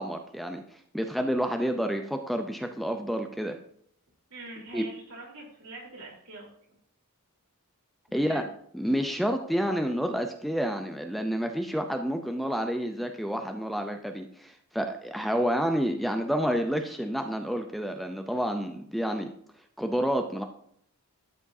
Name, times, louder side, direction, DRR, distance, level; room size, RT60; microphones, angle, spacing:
voice 1, 0.0-3.6 4.7-4.8 8.1-8.5 8.7-19.3 19.8-20.4, equal, ahead, 5 dB, 0.5 m, -29 dB
voice 2, 4.3-6.5 8.1-8.5, right 2 dB, 75° right, -3 dB, 3.6 m, -44 dB
12.5 x 7.1 x 2.7 m, 0.65 s
head